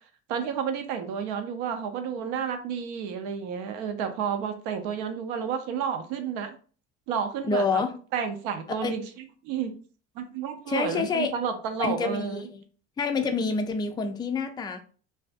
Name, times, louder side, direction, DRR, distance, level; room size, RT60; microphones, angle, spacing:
voice 1, 0.3-6.5 7.1-7.8 8.1-9.0 9.4-9.7 10.2-12.4, right 7 dB, 75° right, 0.6 m, -31 dB
voice 2, 7.4-7.9 8.8-9.0 10.7-11.3 11.8-12.5 13.0-14.8, left 4 dB, 15° left, 0.3 m, -27 dB
2.5 x 2.3 x 2.4 m
hypercardioid pair, 80°, 34 cm